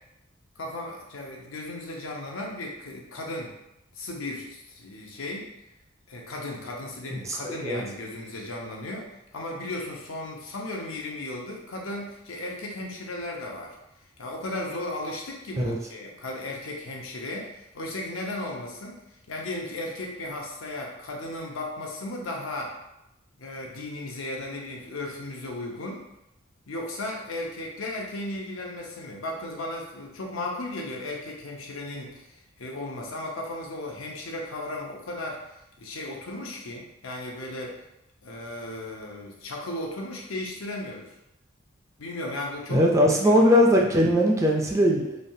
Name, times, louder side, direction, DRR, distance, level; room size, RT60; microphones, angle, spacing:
voice 1, 0.6-3.5 3.9-5.5 6.1-13.8 14.2-19.0 19.3-22.7 23.4-26.1 26.7-37.8 38.2-41.1 42.0-42.8 43.2-43.5 43.8-43.9, left 1 dB, 85° left, -1 dB, 0.7 m, -35 dB
voice 2, 42.7-45.2, equal, 15° right, -1 dB, 0.3 m, -20 dB
3.2 x 2.3 x 2.6 m, 0.86 s
head